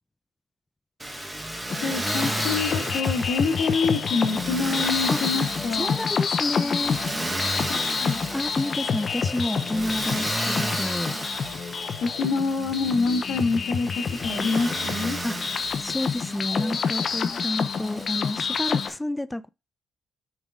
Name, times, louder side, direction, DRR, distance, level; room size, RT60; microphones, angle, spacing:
Motor vehicle (road), 1.0-18.9, right 1 dB, 10° right, 1.3 m, -33 dB
sound 1, 1.7-18.9, left 6 dB, 50° left, 0.8 m, -28 dB
voice 1, 1.8-5.9 7.8-8.2 12.0-15.2, left 4 dB, 75° left, 1.8 m, -26 dB
voice 2, 5.7-7.0 8.3-11.2 15.2-15.4 15.8-19.5, left 1 dB, 10° left, 0.4 m, -30 dB
7.1 x 3.9 x 3.6 m
cardioid pair, 90°, 0 cm